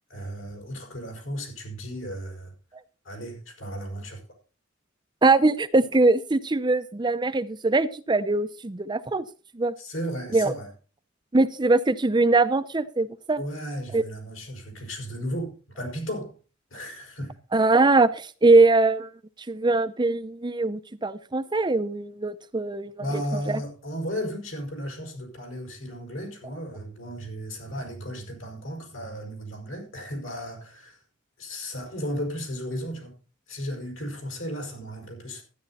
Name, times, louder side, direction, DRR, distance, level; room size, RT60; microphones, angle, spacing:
voice 1, 0.1-2.5 3.0-4.2 9.8-10.7 13.4-16.3 16.7-17.4 23.0-31.0 31.4-33.1 33.5-35.4, equal, 80° left, 5.6 m, -34 dB
voice 2, 5.2-9.2 9.6-9.7 10.3-10.5 11.3-13.4 13.9-14.0 17.5-19.1 19.5-22.9 23.5-23.6, right 3 dB, 25° right, 0.6 m, -22 dB
13.0 x 10.0 x 4.2 m
head